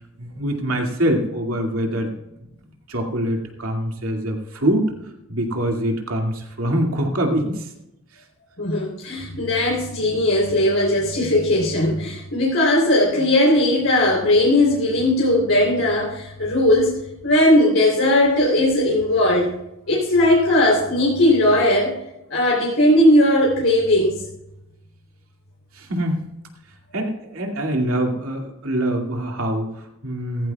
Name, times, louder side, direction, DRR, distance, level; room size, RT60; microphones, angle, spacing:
voice 1, 0.2-2.1 2.9-4.9 5.3-7.7 8.1-8.2 25.7-26.2 26.9-30.5, right 1 dB, 85° right, 2 dB, 2.3 m, -24 dB
voice 2, 8.6-16.9 17.2-19.5 19.9-21.9 22.3-24.2, left 1 dB, 75° left, -3 dB, 3.5 m, -18 dB
16.0 x 15.0 x 2.4 m, 0.87 s
head